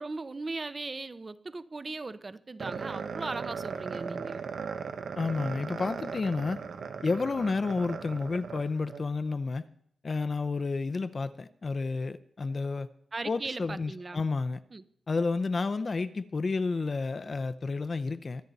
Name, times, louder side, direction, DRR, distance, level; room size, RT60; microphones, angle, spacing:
voice 1, 0.0-4.4 13.1-14.2 14.7-14.8, right 3 dB, 35° right, 14 dB, 0.7 m, -38 dB
sound 1, 2.6-9.0, right 6 dB, 80° right, 1.0 m, -38 dB
voice 2, 5.2-6.6 7.0-9.7 10.0-12.9 13.2-14.6 15.1-18.5, left 4 dB, 45° left, 11 dB, 0.6 m, -31 dB
23.5 x 9.3 x 4.1 m, 0.68 s
cardioid pair, 80°, 0 cm